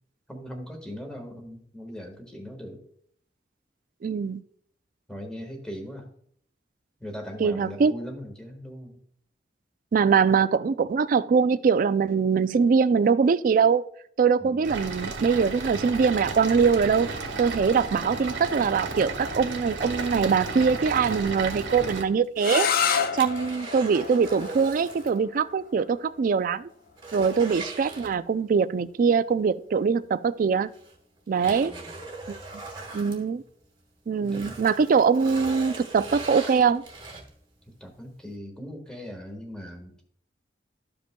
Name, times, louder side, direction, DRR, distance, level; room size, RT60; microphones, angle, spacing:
voice 1, 0.3-2.8 5.1-6.1 7.0-9.0 14.4-14.7 31.4-32.0 33.3-33.4 34.2-34.6 37.8-40.0, equal, 5° left, 1.4 m, -40 dB
voice 2, 4.0-4.4 7.4-7.9 9.9-13.8 14.2-17.1 17.4-26.7 27.1-30.7 31.3-31.7 32.3-32.4 32.9-33.4 34.1-36.8, right 5 dB, 50° right, 0.3 m, -23 dB
sound 1, 14.6-22.0, right 3 dB, 90° right, 1.2 m, -33 dB
sound 2, 22.2-25.2 25.5-25.6 26.1-26.2 26.5-28.6 30.0-30.1 30.7-33.8 34.2-37.5 38.0-38.1, right 3 dB, 25° right, 1.3 m, -40 dB
sound 3, 22.4-28.1, left 7 dB, 50° left, 0.5 m, -31 dB
13.5 x 5.2 x 2.2 m
head